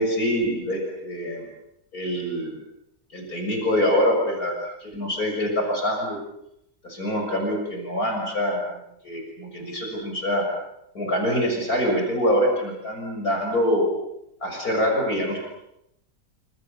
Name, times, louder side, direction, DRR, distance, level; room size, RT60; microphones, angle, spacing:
voice 1, 0.0-1.5 1.9-2.6 3.1-6.2 6.8-10.5 10.9-13.9 14.4-15.4, equal, 75° left, 2 dB, 7.1 m, -25 dB
29.0 x 27.5 x 6.9 m, 0.82 s
omnidirectional pair, 1.6 m